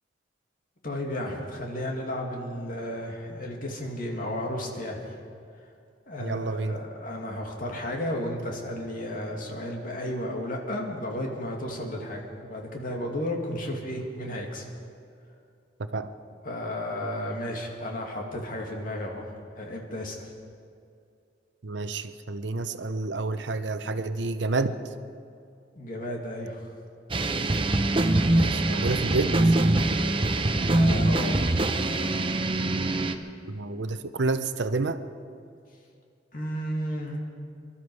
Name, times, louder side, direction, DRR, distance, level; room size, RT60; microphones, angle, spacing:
voice 1, 0.8-5.0 6.1-14.7 16.4-20.3 25.8-26.7 30.7-31.4 36.3-37.2, left 1 dB, 50° left, 0 dB, 2.3 m, -33 dB
voice 2, 6.2-6.8 15.9-16.1 21.6-24.8 28.3-29.6 33.5-35.0, right 3 dB, 75° right, 10 dB, 0.7 m, -29 dB
sound 1, 27.1-33.2, right 2 dB, 30° right, 0.7 m, -23 dB
24.0 x 12.5 x 4.8 m, 2.4 s
head